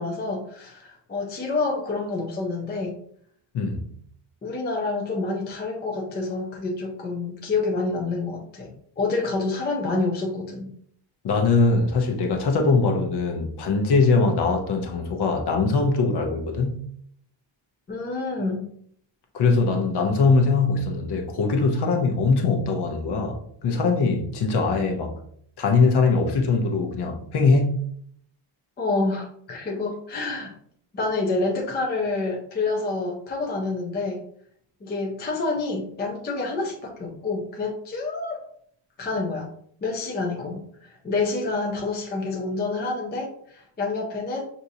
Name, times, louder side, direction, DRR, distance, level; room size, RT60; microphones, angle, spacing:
voice 1, 0.0-3.0 4.4-8.7 9.0-10.7 17.9-18.7 28.8-30.5 30.9-34.2 34.8-38.4 39.0-39.5 39.8-44.5, left 3 dB, 20° left, 0.5 m, -28 dB
voice 2, 3.5-3.9 11.2-16.8 19.3-25.2 25.6-27.9, left 3 dB, 50° left, 0.8 m, -22 dB
6.1 x 2.7 x 2.7 m
cardioid pair, 170°, 50 cm